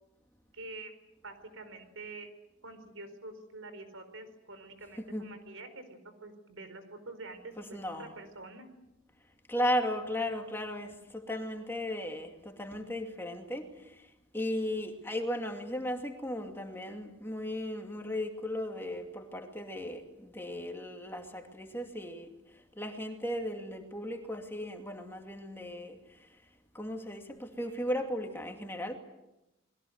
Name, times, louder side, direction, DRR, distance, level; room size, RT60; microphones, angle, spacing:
voice 1, 0.5-0.9 1.2-2.3 2.6-8.7, right 2 dB, 80° right, 9 dB, 4.6 m, -46 dB
voice 2, 7.6-8.1 9.5-14.1 14.3-22.3 22.8-26.0 26.7-29.0, left 1 dB, 10° left, 3 dB, 2.4 m, -36 dB
30.0 x 22.0 x 8.0 m, 0.95 s
head